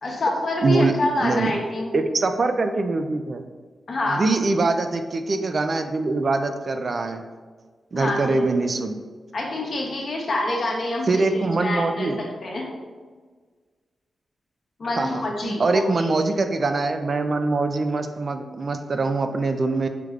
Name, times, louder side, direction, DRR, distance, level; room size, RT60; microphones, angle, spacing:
voice 1, 0.0-1.9 3.9-4.3 7.9-8.4 9.3-12.7 14.8-16.1, left 2 dB, 60° left, -1 dB, 0.9 m, -27 dB
voice 2, 0.6-1.5 1.9-3.4 4.1-7.2 7.9-9.0 11.1-12.2 15.0-19.9, right 3 dB, 50° right, 7 dB, 0.3 m, -23 dB
4.9 x 3.2 x 2.4 m, 1.5 s
cardioid pair, 80°, 0 cm